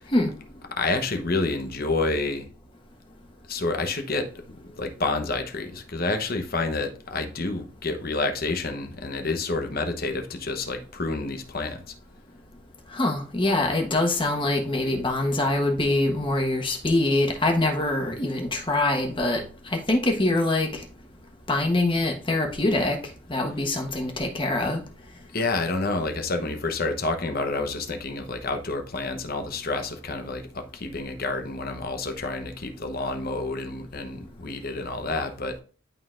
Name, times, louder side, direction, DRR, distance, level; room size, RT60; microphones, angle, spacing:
voice 1, 0.7-2.5 3.5-4.3 4.6-11.8 25.3-35.6, left 3 dB, 50° left, 0.9 m, -29 dB
voice 2, 12.9-20.8 21.5-23.0 23.3-24.8, left 2 dB, 25° left, 1.2 m, -24 dB
11.5 x 3.9 x 2.5 m
head